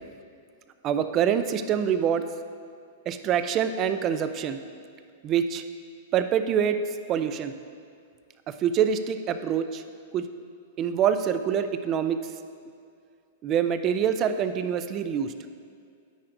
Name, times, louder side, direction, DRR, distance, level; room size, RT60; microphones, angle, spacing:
voice 1, 0.8-2.2 3.1-4.6 5.2-5.6 6.1-7.5 8.5-9.8 10.1-10.3 10.8-12.2 13.4-15.3, right 8 dB, 25° right, 10 dB, 0.3 m, -25 dB
10.0 x 8.7 x 2.6 m, 2.2 s
supercardioid pair, 170°, 0 cm